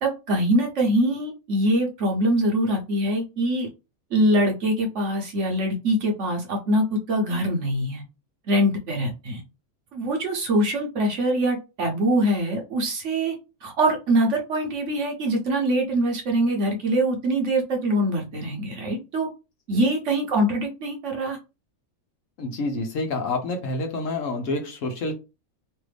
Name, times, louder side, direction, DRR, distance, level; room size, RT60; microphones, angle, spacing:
voice 1, 0.0-3.7 4.1-8.0 8.5-9.4 9.9-13.3 13.6-19.3 19.7-21.4, right 1 dB, 55° right, 1.1 m, -23 dB
voice 2, 22.4-25.1, left 2 dB, 65° left, 1.1 m, -28 dB
3.2 x 2.5 x 3.3 m
omnidirectional pair, 1.6 m